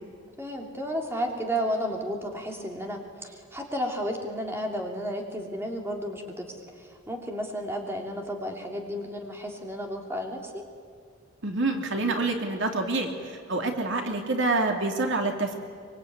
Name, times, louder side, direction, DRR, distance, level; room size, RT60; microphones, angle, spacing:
voice 1, 0.4-10.6, equal, 10° right, 1 dB, 3.1 m, -32 dB
voice 2, 11.4-13.1 13.5-15.6, right 2 dB, 60° right, 3 dB, 2.7 m, -27 dB
25.0 x 23.5 x 9.5 m, 2.1 s
head